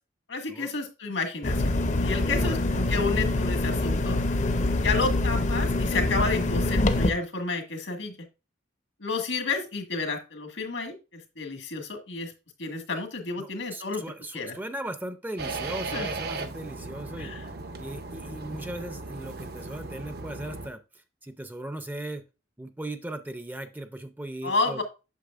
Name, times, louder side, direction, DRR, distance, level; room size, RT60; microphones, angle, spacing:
voice 1, 0.3-4.2 4.8-8.2 9.0-12.3 12.6-14.0 14.3-14.5 15.9-16.1 17.2-17.4 24.4-24.8, left 3 dB, 80° left, 4 dB, 1.7 m, -31 dB
sound 1, 1.4-7.1, left 2 dB, 40° left, 0.6 m, -25 dB
voice 2, 2.2-2.6 13.4-17.3 17.8-20.8 21.2-22.2 22.6-24.8, right 1 dB, 10° right, 10 dB, 0.5 m, -38 dB
sound 2, 15.4-20.7, right 3 dB, 55° right, 0.7 m, -37 dB
8.2 x 6.4 x 2.4 m, 0.29 s
head